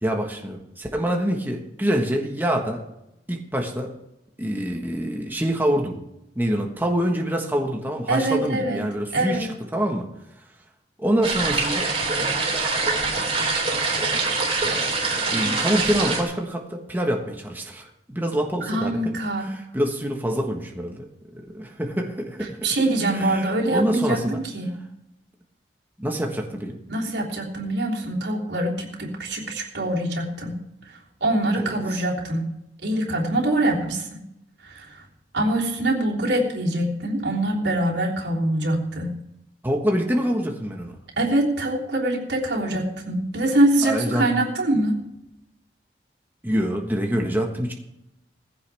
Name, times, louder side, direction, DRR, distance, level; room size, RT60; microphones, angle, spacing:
voice 1, 0.0-2.8 3.3-3.9 4.4-6.0 6.3-10.1 11.0-11.9 14.7-14.8 15.3-19.0 19.4-21.1 21.3-22.6 23.1-24.4 26.0-26.8 31.5-32.0 39.6-40.9 43.8-44.4 46.4-47.7, equal, 10° right, 1 dB, 1.4 m, -26 dB
voice 2, 8.1-8.8 9.1-9.5 18.7-19.5 22.6-24.7 26.9-30.6 31.2-32.5 32.8-34.1 34.6-35.0 35.3-39.2 41.2-45.0, right 1 dB, 85° right, -2 dB, 3.4 m, -24 dB
sound 1, 11.2-16.2, right 3 dB, 35° right, 3.7 m, -24 dB
18.0 x 15.5 x 3.5 m, 0.85 s
head